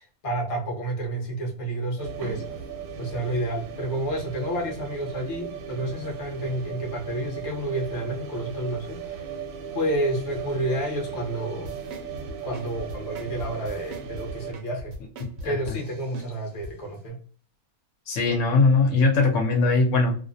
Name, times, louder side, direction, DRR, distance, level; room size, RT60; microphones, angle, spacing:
voice 1, 0.0-2.4 3.0-9.0 9.7-11.8 12.4-14.9 15.4-17.2, right 1 dB, 40° left, -1 dB, 0.5 m, -30 dB
sound 1, 2.0-14.5, right 6 dB, 90° right, 1.1 m, -37 dB
sound 2, 11.6-16.7 17.1-17.2, right 1 dB, 65° right, 0.7 m, -40 dB
voice 2, 18.1-20.2, left 3 dB, 65° left, 0 dB, 0.9 m, -20 dB
2.4 x 2.0 x 2.5 m, 0.44 s
omnidirectional pair, 1.5 m